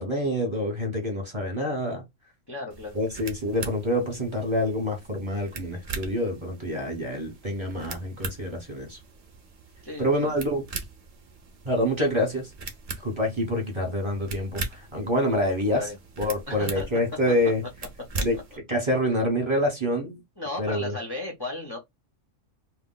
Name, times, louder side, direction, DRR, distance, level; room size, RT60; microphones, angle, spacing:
voice 1, 0.0-2.0 2.9-9.0 10.0-10.6 11.6-12.5 13.0-15.9 16.2-17.6 18.2-18.4 18.7-20.2 20.6-20.9, equal, 25° right, 0.9 m, -26 dB
voice 2, 2.5-3.0 9.8-10.4 15.3-16.0 16.5-16.9 18.2-18.3 19.1-19.2 20.4-21.8, left 2 dB, 30° left, 0.5 m, -35 dB
sound 1, 2.7-18.6, right 3 dB, 45° right, 0.5 m, -40 dB
2.2 x 2.2 x 3.7 m
omnidirectional pair, 1.3 m